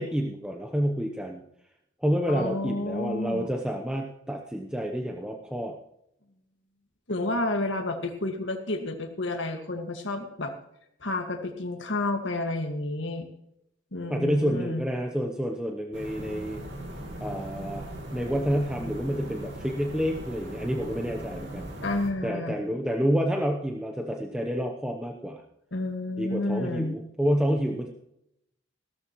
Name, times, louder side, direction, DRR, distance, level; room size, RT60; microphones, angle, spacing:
voice 1, 0.0-1.4 2.0-5.7 14.1-16.6 17.2-21.7 22.2-25.4 26.2-27.9, equal, 5° right, 2 dB, 0.8 m, -29 dB
voice 2, 2.3-3.5 7.1-10.5 11.0-13.3 13.9-14.9 21.8-22.6 25.7-27.0, left 2 dB, 65° left, 5 dB, 1.8 m, -30 dB
sound 1, 15.9-22.1, right 1 dB, 60° right, 2.8 m, -39 dB
16.5 x 13.5 x 3.0 m, 0.78 s
head